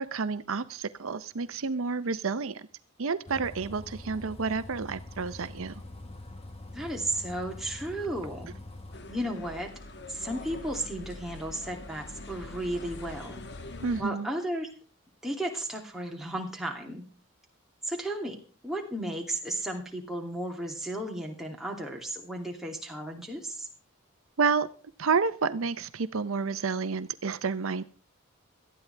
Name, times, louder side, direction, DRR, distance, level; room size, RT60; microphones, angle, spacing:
voice 1, 0.0-2.7 3.0-5.7 13.8-14.3 24.4-24.7 25.0-27.8, right 5 dB, 75° right, 13 dB, 0.7 m, -30 dB
Bus, 3.3-9.0, left 2 dB, 30° left, 1.4 m, -44 dB
voice 2, 6.7-8.5 9.1-9.7 10.1-13.4 14.0-14.7 15.2-17.0 17.8-18.4 18.6-23.7, right 1 dB, ahead, -1 dB, 2.6 m, -34 dB
sound 1, 8.9-14.0, left 2 dB, 55° left, 1.3 m, -43 dB
18.0 x 13.0 x 3.4 m, 0.39 s
head